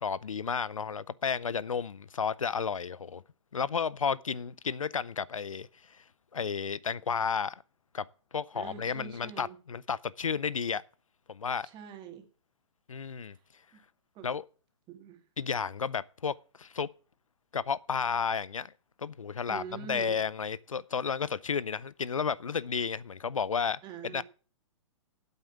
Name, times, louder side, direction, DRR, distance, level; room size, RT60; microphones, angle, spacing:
voice 1, 0.0-3.2 3.5-6.0 6.3-7.5 7.9-8.0 8.3-10.8 11.3-11.7 12.9-13.4 14.2-14.4 15.4-16.9 17.5-18.7 19.0-23.8 24.1-24.2, left 6 dB, 85° left, 0.5 m, -32 dB
voice 2, 8.5-9.6 11.6-12.3 13.3-13.4 13.7-13.8 14.1-14.3 14.9-15.2 19.5-20.2 23.8-24.2, right 8 dB, 30° right, 2.4 m, -44 dB
8.8 x 8.0 x 7.1 m
figure-of-eight pair, 120°, 17 cm